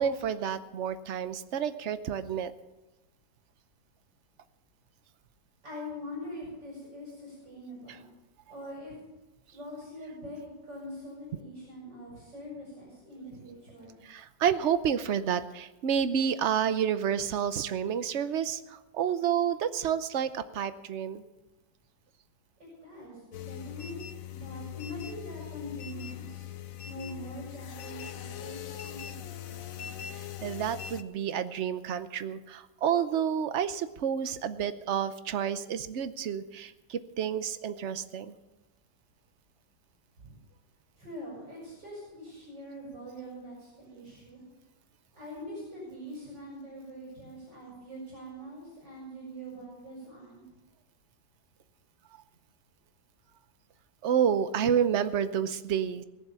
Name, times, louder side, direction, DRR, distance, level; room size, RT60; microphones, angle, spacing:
voice 1, 0.0-2.5 14.1-18.6 18.9-21.2 30.4-38.3 54.0-56.0, right 8 dB, 55° right, 12 dB, 0.8 m, -29 dB
voice 2, 5.6-8.1 8.5-9.0 9.5-14.0 22.6-24.0 24.3-26.5 26.8-30.2 40.2-40.4 40.9-44.4 45.1-50.4, equal, 80° right, -5 dB, 6.3 m, -43 dB
sound 1, 23.3-31.0, left 11 dB, 60° left, 1.0 m, -41 dB
20.5 x 7.3 x 6.9 m, 1.0 s
omnidirectional pair, 1.9 m